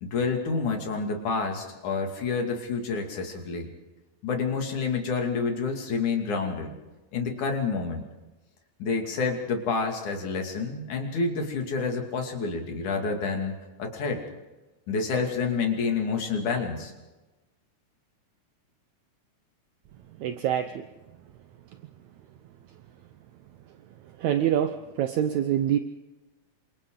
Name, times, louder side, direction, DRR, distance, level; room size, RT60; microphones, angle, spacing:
voice 1, 0.0-3.7 4.2-6.7 7.1-8.1 8.8-14.2 14.9-16.9, left 4 dB, 55° left, 2 dB, 3.8 m, -28 dB
voice 2, 20.2-20.9 24.2-25.8, right 10 dB, 75° right, 8 dB, 1.7 m, -25 dB
28.5 x 26.0 x 3.9 m, 1.1 s
omnidirectional pair, 4.3 m